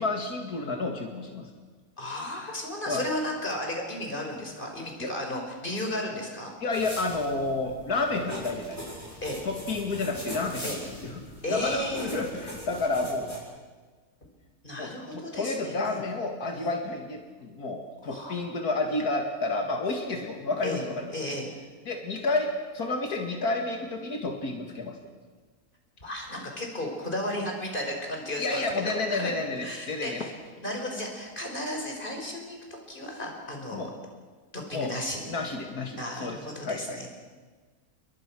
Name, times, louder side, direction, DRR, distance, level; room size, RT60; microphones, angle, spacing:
voice 1, 0.0-1.5 2.9-3.0 5.0-5.1 6.6-9.0 9.4-11.2 11.5-13.4 14.8-21.3 21.9-25.0 28.4-30.3 33.7-33.9 34.7-34.9 35.3-37.0, left 3 dB, 85° left, 3 dB, 2.5 m, -30 dB
voice 2, 2.0-6.5 9.2-9.4 10.6-10.8 11.4-12.2 14.6-16.0 16.6-16.7 18.0-18.4 20.6-20.8 21.1-21.5 26.0-29.3 29.6-30.3 30.6-33.9 34.5-35.2 36.0-37.1, left 1 dB, 35° left, 1 dB, 5.3 m, -34 dB
sound 1, 6.7-13.4, equal, 10° left, 7.0 m, -41 dB
30.0 x 22.5 x 6.2 m, 1.4 s
omnidirectional pair, 1.6 m